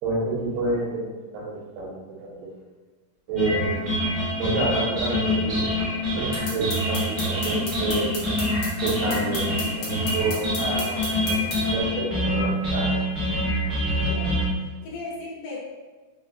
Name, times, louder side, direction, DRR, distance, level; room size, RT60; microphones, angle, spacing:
voice 1, 0.0-2.5 3.3-4.1 4.4-5.7 6.2-8.1 8.8-12.9, right 2 dB, 75° right, -4 dB, 2.4 m, -29 dB
sound 1, 3.4-14.4, left 1 dB, 55° right, 0.8 m, -25 dB
sound 2, 6.3-11.6, left 2 dB, 65° left, 1.9 m, -34 dB
voice 2, 14.0-15.6, left 3 dB, 80° left, -4 dB, 2.6 m, -37 dB
5.8 x 2.2 x 2.4 m, 1.3 s
omnidirectional pair, 4.1 m